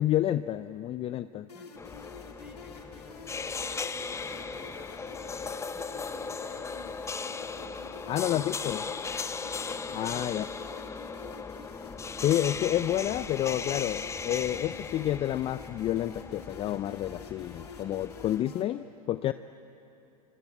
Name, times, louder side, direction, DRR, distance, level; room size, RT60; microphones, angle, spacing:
voice 1, 0.0-1.5 8.1-8.9 9.9-10.4 12.2-19.3, left 12 dB, 30° left, 13 dB, 0.6 m, -29 dB
sound 1, 1.5-18.6, left 5 dB, 80° left, 2.5 m, -49 dB
sound 2, 1.8-18.4, left 5 dB, 15° left, 0.9 m, -38 dB
voice 2, 2.3-6.9 7.5-8.3 9.6-10.5, right 1 dB, 5° right, 2 dB, 5.5 m, -54 dB
28.5 x 25.0 x 8.2 m, 2.8 s
figure-of-eight pair, 90°, 20 cm